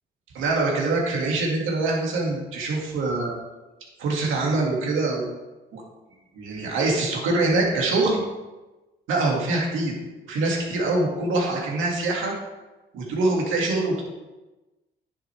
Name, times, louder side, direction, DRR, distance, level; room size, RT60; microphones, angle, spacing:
voice 1, 0.3-3.4 4.0-5.3 5.7-5.8 6.3-8.2 9.1-9.9 10.3-12.3 12.9-14.0, right 2 dB, 90° right, -1 dB, 2.3 m, -24 dB
10.0 x 6.6 x 3.5 m, 1.1 s
cardioid pair, 90°, 20 cm